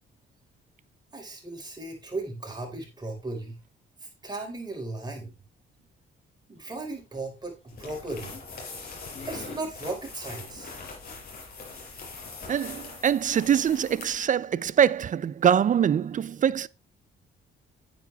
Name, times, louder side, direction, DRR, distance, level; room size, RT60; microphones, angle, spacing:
voice 1, 1.1-3.6 4.2-5.4 6.5-8.4 9.2-10.7, right 2 dB, 20° right, 4.7 m, -36 dB
sound 1, 6.5-12.6, left 2 dB, 35° left, 6.0 m, -50 dB
sound 2, 7.7-14.3, left 4 dB, 50° left, 5.6 m, -42 dB
voice 2, 12.5-16.7, right 8 dB, 40° right, 0.4 m, -23 dB
9.5 x 9.1 x 3.4 m
cardioid pair, 90°, 20 cm